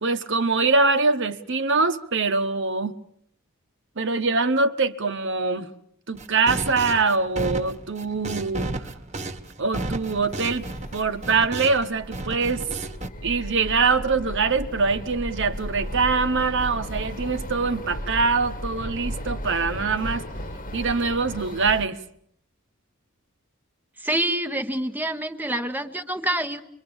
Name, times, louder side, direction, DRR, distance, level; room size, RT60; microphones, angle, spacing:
voice 1, 0.0-3.0 4.0-5.7 6.1-8.9 9.6-10.7 10.9-12.6 13.2-20.3 20.7-22.0, right 4 dB, 60° right, 1.2 m, -23 dB
sound 1, 6.2-11.9 12.1-13.1, right 2 dB, 30° right, 1.4 m, -33 dB
sound 2, 10.3-21.9, equal, 40° left, 1.4 m, -35 dB
voice 2, 24.0-26.6, right 1 dB, 10° right, 1.1 m, -26 dB
26.0 x 23.5 x 7.2 m
head